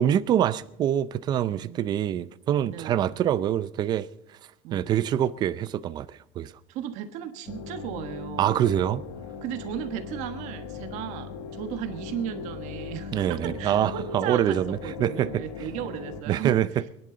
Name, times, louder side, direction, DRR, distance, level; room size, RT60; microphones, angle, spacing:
voice 1, 0.0-4.1 4.7-6.5 8.4-9.0 13.1-15.4 16.3-16.7, right 10 dB, 30° right, 0.5 m, -25 dB
voice 2, 1.5-2.2 2.7-3.2 4.6-4.9 6.7-8.6 9.4-16.6, right 10 dB, 55° right, 1.5 m, -36 dB
sound 1, 7.5-16.2, left 6 dB, 85° left, 1.3 m, -38 dB
25.0 x 11.0 x 3.9 m
cardioid pair, 170°, 15 cm